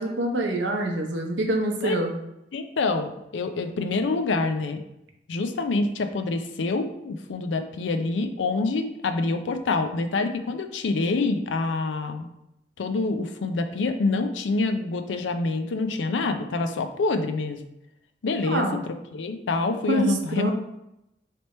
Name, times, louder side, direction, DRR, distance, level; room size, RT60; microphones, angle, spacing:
voice 1, 0.0-2.1 18.5-18.8 19.9-20.5, right 1 dB, 75° right, 2 dB, 0.7 m, -26 dB
voice 2, 2.5-4.8 5.3-12.3 12.8-17.6 18.2-20.5, left 3 dB, 85° left, 8 dB, 0.4 m, -26 dB
3.3 x 2.9 x 4.2 m, 0.85 s
head